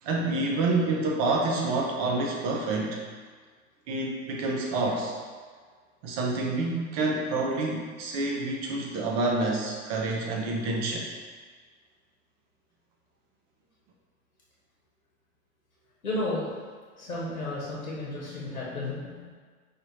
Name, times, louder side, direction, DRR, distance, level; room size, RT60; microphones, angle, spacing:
voice 1, 0.0-3.0 3.9-5.2 6.0-11.1, right 2 dB, 30° right, -1 dB, 0.4 m, -28 dB
voice 2, 16.0-16.5 17.0-19.3, left 2 dB, 80° left, -6 dB, 1.1 m, -33 dB
4.8 x 2.7 x 3.0 m, 1.5 s
figure-of-eight pair, 90°, 42 cm